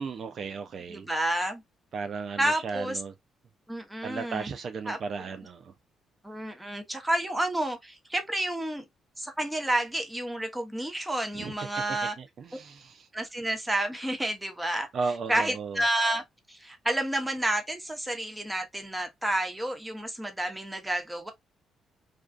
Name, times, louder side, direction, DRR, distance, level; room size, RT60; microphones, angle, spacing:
voice 1, 0.0-1.1 1.9-3.1 4.0-5.7 11.3-11.5 11.9-13.1 14.9-15.8, right 5 dB, 55° right, 0.3 m, -35 dB
voice 2, 0.9-1.6 2.4-3.0 3.7-4.5 4.9-5.3 6.2-8.8 9.2-12.1 13.1-14.9 15.3-16.2 16.5-21.3, right 1 dB, 10° right, 0.8 m, -30 dB
2.5 x 2.3 x 2.2 m
cardioid pair, 90°, 0 cm